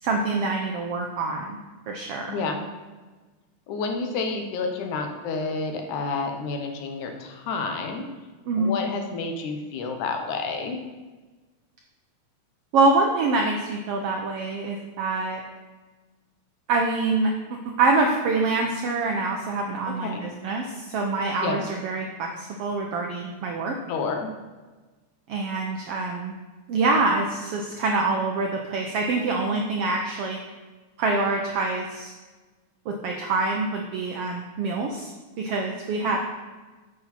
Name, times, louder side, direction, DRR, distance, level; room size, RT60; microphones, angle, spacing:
voice 1, 0.0-1.6 1.9-2.3 8.5-8.8 12.7-15.4 16.7-17.3 17.8-23.8 25.3-26.4 26.7-30.4 31.0-32.1 32.9-35.1 35.4-36.2, right 3 dB, 80° right, 2 dB, 1.3 m, -25 dB
voice 2, 2.3-2.6 3.7-8.1 8.6-10.8 20.0-20.2 21.4-21.6 23.9-24.3, left 4 dB, 80° left, 4 dB, 2.3 m, -29 dB
8.4 x 6.4 x 4.2 m, 1.3 s
omnidirectional pair, 3.5 m